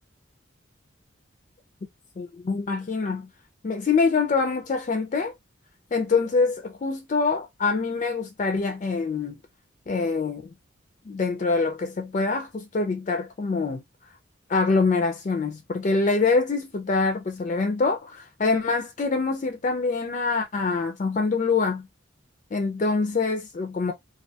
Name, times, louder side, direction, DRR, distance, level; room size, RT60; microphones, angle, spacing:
voice 1, 2.2-3.3 3.6-5.3 5.9-9.4 9.9-10.5 11.1-13.8 14.5-21.9 22.5-23.9, left 4 dB, 35° left, 0.3 m, -25 dB
2.3 x 2.2 x 2.6 m
head